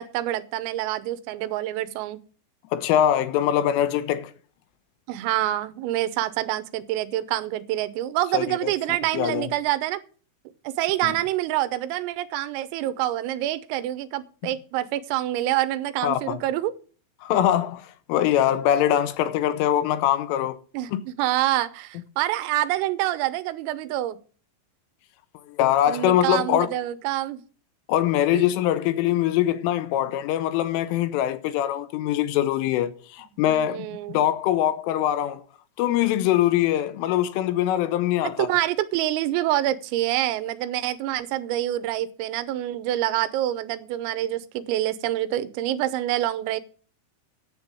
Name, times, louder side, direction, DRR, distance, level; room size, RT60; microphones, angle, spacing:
voice 1, 0.0-2.2 5.1-10.0 10.7-16.7 17.3-17.4 20.7-24.2 25.9-27.4 28.3-28.5 33.5-34.2 38.4-46.6, right 14 dB, 85° right, 3.5 m, -26 dB
voice 2, 2.7-4.3 8.3-8.7 9.1-9.5 11.0-11.1 16.0-16.4 17.2-20.6 20.9-21.0 25.5-26.7 27.9-35.4 35.8-38.5, left 11 dB, 80° left, 3.2 m, -23 dB
10.5 x 8.2 x 7.6 m
omnidirectional pair, 6.0 m